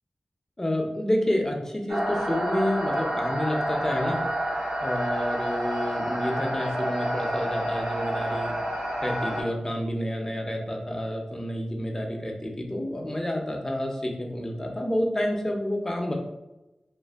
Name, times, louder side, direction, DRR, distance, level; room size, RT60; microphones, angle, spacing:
voice 1, 0.6-4.2 4.8-8.5 9.0-16.1, left 1 dB, 20° left, 0 dB, 0.5 m, -29 dB
sound 1, 1.9-9.4, equal, 80° right, 1.0 m, -29 dB
2.5 x 2.5 x 2.4 m, 0.98 s
wide cardioid pair, 70°, 2 cm